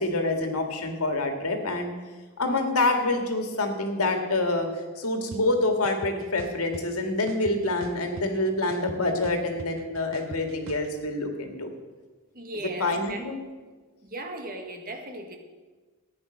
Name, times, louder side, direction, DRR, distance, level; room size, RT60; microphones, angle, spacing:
voice 1, 0.0-1.9 2.4-4.7 5.0-11.7 12.8-13.4, left 2 dB, 85° left, 4 dB, 2.1 m, -26 dB
sound 1, 5.3-5.4 5.8-6.8 7.3-8.4 8.7-10.9, right 3 dB, 60° right, 0.8 m, -41 dB
voice 2, 12.3-13.3 14.0-15.4, right 1 dB, 40° right, 4 dB, 1.8 m, -37 dB
14.0 x 9.8 x 6.4 m, 1.3 s
head